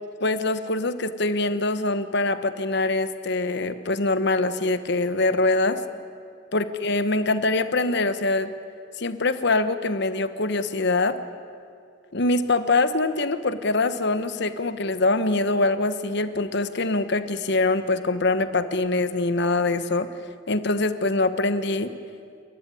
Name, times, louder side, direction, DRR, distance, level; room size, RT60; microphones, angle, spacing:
voice 1, 0.2-5.8 6.5-8.5 9.0-11.2 12.1-20.1 20.5-21.9, left 2 dB, 55° left, 11 dB, 1.1 m, -24 dB
29.0 x 14.0 x 9.8 m, 2.3 s
head